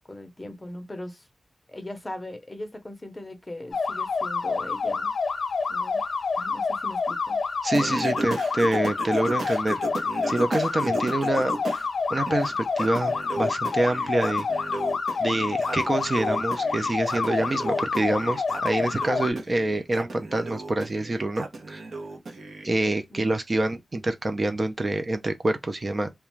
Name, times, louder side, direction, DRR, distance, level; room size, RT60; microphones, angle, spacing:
voice 1, 0.1-1.3 1.7-5.1 5.7-6.0 6.4-7.4 23.1-23.4, left 1 dB, 20° left, 0.6 m, -39 dB
sound 1, 3.7-19.3, left 4 dB, 80° left, 0.6 m, -28 dB
voice 2, 7.6-9.8 10.3-11.5 12.1-14.5 15.2-21.8 22.6-26.1, right 2 dB, 35° right, 0.4 m, -26 dB
Singing, 7.7-11.9 12.3-22.7, right 2 dB, 70° right, 0.8 m, -35 dB
2.4 x 2.2 x 3.0 m
wide cardioid pair, 100°, 0 cm